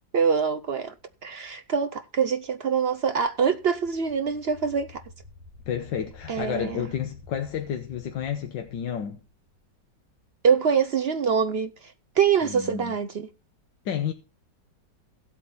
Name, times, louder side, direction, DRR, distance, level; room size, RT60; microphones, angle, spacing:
voice 1, 0.1-0.9 1.2-5.0 6.3-6.9 10.4-13.3, right 6 dB, 70° right, 0.6 m, -24 dB
sound 1, 3.2-9.9, left 3 dB, 20° right, 4.6 m, -50 dB
voice 2, 5.7-9.2 12.4-12.9 13.8-14.1, left 9 dB, 85° left, 1.7 m, -31 dB
16.0 x 8.3 x 4.1 m
omnidirectional pair, 1.9 m